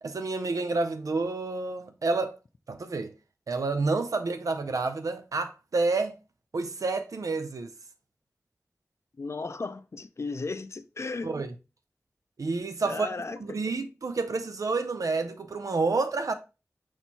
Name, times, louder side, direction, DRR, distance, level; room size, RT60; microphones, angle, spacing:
voice 1, 0.0-2.4 2.7-3.1 3.5-6.2 6.5-7.7 11.2-11.5 12.4-13.1 13.4-16.3, right 3 dB, 90° right, 0.4 m, -29 dB
voice 2, 9.2-11.4 12.8-13.6, left 3 dB, 55° left, 0.4 m, -35 dB
4.4 x 4.3 x 2.7 m
wide cardioid pair, 70°, 6 cm